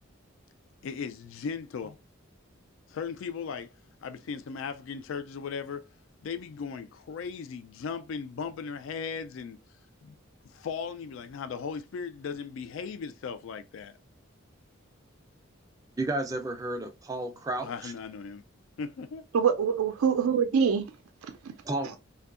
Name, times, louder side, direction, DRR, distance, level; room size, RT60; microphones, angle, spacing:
voice 1, 0.8-2.0 2.9-3.7 4.0-5.9 6.2-9.6 10.0-10.2 10.4-14.0 17.6-18.4 18.8-19.3, left 6 dB, 70° left, 0.3 m, -37 dB
voice 2, 16.0-17.9 21.6-21.9, right 2 dB, 15° right, 0.3 m, -32 dB
voice 3, 19.3-20.9 21.2-21.5 21.8-22.0, right 6 dB, 85° right, 0.4 m, -25 dB
2.6 x 2.3 x 2.4 m
head